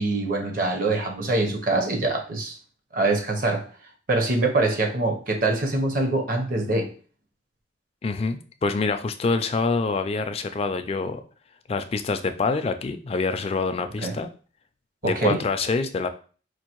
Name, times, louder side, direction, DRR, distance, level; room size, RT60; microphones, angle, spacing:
voice 1, 0.0-2.5 2.9-3.7 4.1-6.9 14.0-14.2 15.0-15.4, right 2 dB, 50° right, 0.7 m, -24 dB
voice 2, 8.0-11.2 11.7-14.3 15.0-16.1, left 4 dB, 35° left, 0.3 m, -26 dB
4.5 x 2.4 x 3.0 m
head